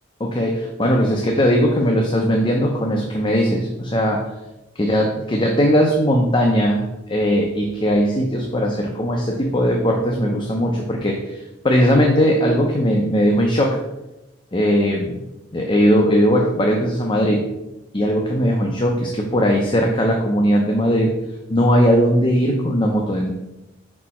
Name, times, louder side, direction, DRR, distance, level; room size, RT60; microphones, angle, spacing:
voice 1, 0.2-4.3 4.8-13.8 14.5-15.2 15.5-17.4 17.9-21.2 21.5-23.3, equal, 25° left, 1 dB, 0.6 m, -19 dB
5.3 x 4.4 x 4.2 m, 0.94 s
head